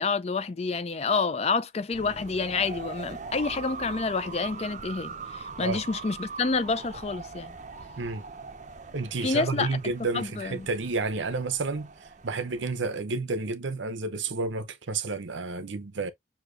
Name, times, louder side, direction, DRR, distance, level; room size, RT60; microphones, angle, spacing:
voice 1, 0.0-7.5 9.2-9.7 10.1-10.6, left 4 dB, 30° left, 0.4 m, -28 dB
sound 1, 1.9-12.8, right 4 dB, 40° right, 0.6 m, -41 dB
voice 2, 8.9-11.9 12.2-16.1, right 3 dB, 70° right, 0.7 m, -30 dB
6.4 x 2.8 x 2.5 m
head